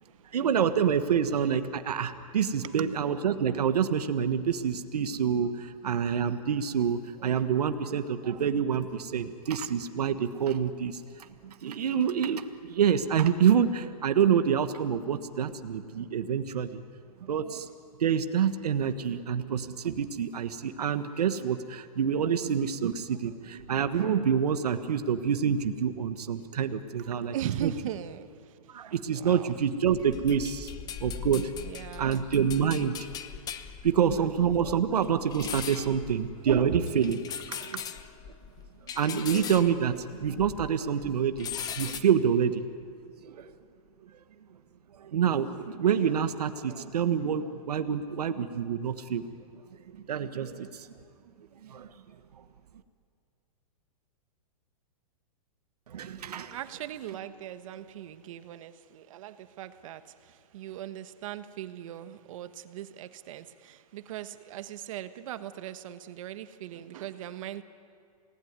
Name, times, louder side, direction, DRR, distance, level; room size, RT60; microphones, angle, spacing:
voice 1, 0.3-16.8 17.2-17.7 18.0-27.3 27.6-27.7 28.7-30.7 31.0-31.7 32.0-33.1 33.8-37.2 38.9-42.6 43.2-43.5 45.0-49.2 49.9-50.9 51.6-51.9 55.9-56.6, right 8 dB, 90° right, 9 dB, 1.4 m, -27 dB
voice 2, 27.0-29.5 31.6-32.3 36.7-36.8 37.5-37.8 56.5-67.6, right 11 dB, 60° right, 11 dB, 1.4 m, -39 dB
sound 1, 29.9-40.8 41.0-42.0, left 8 dB, 20° left, 1.0 m, -40 dB
28.5 x 19.0 x 9.5 m, 2.3 s
hypercardioid pair, 145°, 20 cm